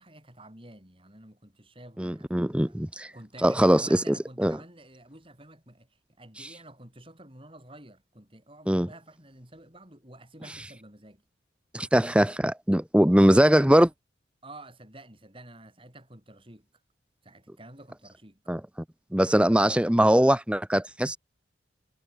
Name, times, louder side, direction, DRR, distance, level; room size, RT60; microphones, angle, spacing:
voice 1, 0.0-2.8 3.1-11.2 14.4-16.7 17.2-18.4, right 1 dB, 30° right, 7.1 m, -50 dB
voice 2, 2.0-3.1 3.4-4.6 6.4-6.6 8.7-8.9 10.5-10.6 11.7-13.9 18.5-18.6 19.1-21.2, equal, 5° right, 0.7 m, -21 dB
head